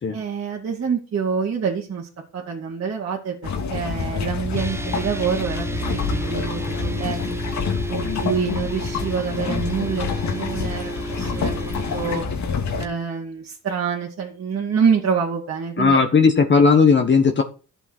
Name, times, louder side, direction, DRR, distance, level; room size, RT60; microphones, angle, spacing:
voice 1, 0.1-7.4 7.9-12.2 12.8-16.0, right 6 dB, 50° right, -3 dB, 2.4 m, -26 dB
sound 1, 3.4-12.8, left 5 dB, 65° left, 2.5 m, -27 dB
sound 2, 4.6-12.2, right 2 dB, 10° right, 0.8 m, -33 dB
voice 2, 15.8-17.4, left 5 dB, 40° left, 4 dB, 1.4 m, -16 dB
11.5 x 8.0 x 4.5 m, 0.35 s
cardioid pair, 90°, 30 cm